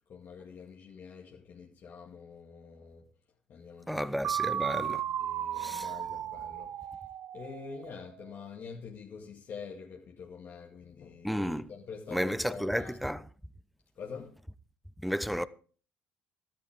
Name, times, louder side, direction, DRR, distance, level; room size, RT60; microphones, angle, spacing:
voice 1, 0.1-3.1 3.5-4.1 4.5-4.6 5.0-7.0 7.3-13.0 14.0-14.4, left 5 dB, 50° left, 2.2 m, -46 dB
voice 2, 3.9-5.0 5.6-5.9 11.2-11.7 12.1-13.2 15.0-15.4, equal, ahead, 0.8 m, -32 dB
sound 1, 4.2-8.1, right 11 dB, 55° right, 0.5 m, -35 dB
13.0 x 12.5 x 3.7 m
supercardioid pair, 70°, 5 cm